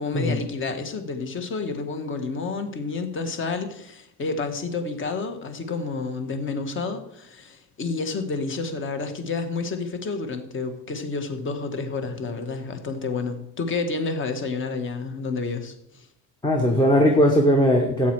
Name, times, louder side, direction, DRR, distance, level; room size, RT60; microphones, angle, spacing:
voice 1, 0.0-16.1, left 4 dB, 25° left, 8 dB, 1.4 m, -30 dB
voice 2, 16.4-18.1, equal, 10° left, 3 dB, 1.1 m, -19 dB
14.0 x 8.8 x 4.7 m, 0.76 s
cardioid pair, 155°, 43 cm